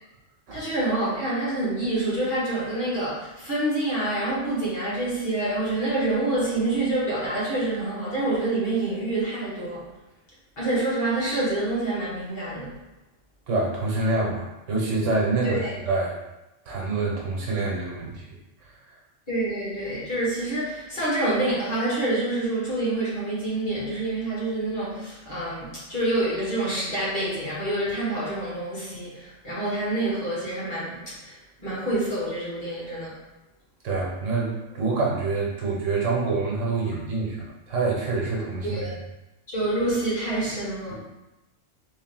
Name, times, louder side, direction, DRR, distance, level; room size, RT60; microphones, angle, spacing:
voice 1, 0.5-9.8 10.6-12.7 15.4-15.7 19.3-33.2 38.6-38.9 39.5-40.9, right 2 dB, 50° left, -8 dB, 1.6 m, -27 dB
voice 2, 13.5-15.6 15.9-16.2 16.7-18.2 33.8-38.9, right 3 dB, 85° right, -2 dB, 1.3 m, -26 dB
3.4 x 2.7 x 3.8 m, 1.0 s
omnidirectional pair, 1.3 m